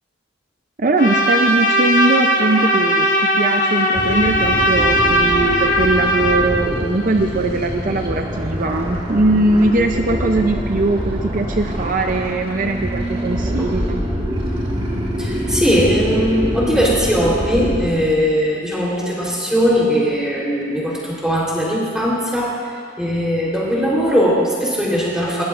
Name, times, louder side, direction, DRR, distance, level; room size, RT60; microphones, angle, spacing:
voice 1, 0.8-14.0, right 2 dB, 40° right, 4 dB, 0.5 m, -20 dB
Trumpet, 1.0-6.4, equal, 40° left, 1.4 m, -18 dB
sound 1, 3.9-17.9, equal, 25° right, 1.8 m, -25 dB
voice 2, 15.2-22.5 23.0-25.4, equal, 5° right, -6 dB, 3.5 m, -19 dB
21.0 x 17.5 x 2.5 m, 2.3 s
head